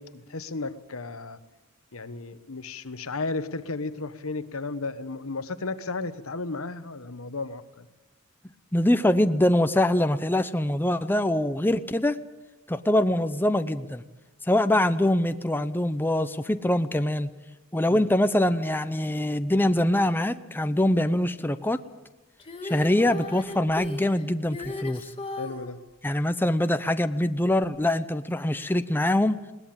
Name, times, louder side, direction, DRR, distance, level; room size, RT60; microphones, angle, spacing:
voice 1, 0.0-1.4 1.9-7.9 17.9-18.1 25.4-25.8, left 3 dB, 80° left, 12 dB, 1.2 m, -34 dB
voice 2, 8.7-12.2 12.7-14.0 14.5-17.3 17.7-21.8 22.6-25.1 26.0-29.4, left 1 dB, 10° left, 10 dB, 0.7 m, -24 dB
Female singing, 22.4-25.7 27.6-27.7, left 2 dB, 25° left, 2.0 m, -36 dB
21.0 x 18.5 x 8.9 m, 1.1 s
head